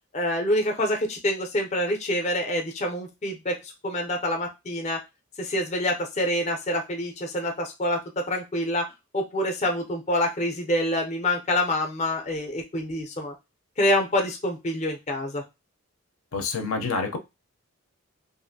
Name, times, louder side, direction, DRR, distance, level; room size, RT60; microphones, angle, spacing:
voice 1, 0.1-5.0 5.4-8.0 8.3-8.8 9.1-13.3 13.8-15.4, left 1 dB, 35° left, 3 dB, 0.5 m, -26 dB
voice 2, 16.3-17.2, left 4 dB, 80° left, 4 dB, 0.6 m, -27 dB
2.6 x 2.4 x 2.6 m, 0.23 s
head